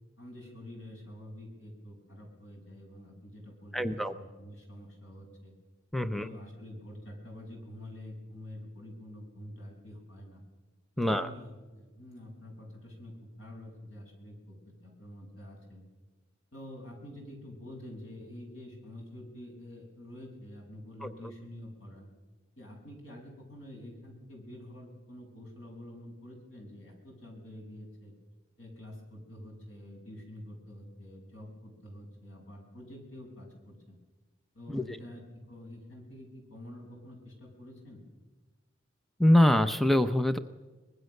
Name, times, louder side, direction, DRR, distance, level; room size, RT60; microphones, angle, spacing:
voice 1, 0.2-5.5 6.1-10.4 11.0-14.6 14.8-15.8 16.5-22.1 22.6-28.1 28.6-34.0 34.5-38.0, left 1 dB, 80° left, 0 dB, 7.1 m, -47 dB
voice 2, 3.7-4.1 5.9-6.3 11.0-11.3 21.0-21.1 34.7-34.8 39.2-40.4, left 1 dB, ahead, 10 dB, 0.7 m, -24 dB
24.0 x 20.0 x 6.6 m, 1.3 s
head